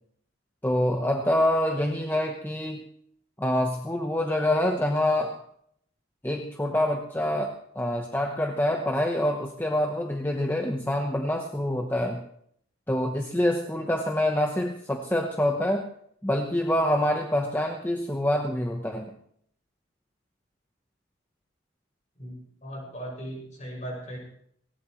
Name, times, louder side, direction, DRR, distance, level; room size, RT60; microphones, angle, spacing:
voice 1, 0.6-2.8 3.4-5.4 6.2-12.2 12.9-15.9 16.2-19.1, left 1 dB, 10° left, 3 dB, 0.9 m, -26 dB
voice 2, 22.6-24.2, right 1 dB, 35° left, -1 dB, 6.2 m, -37 dB
18.5 x 18.0 x 3.1 m, 0.67 s
head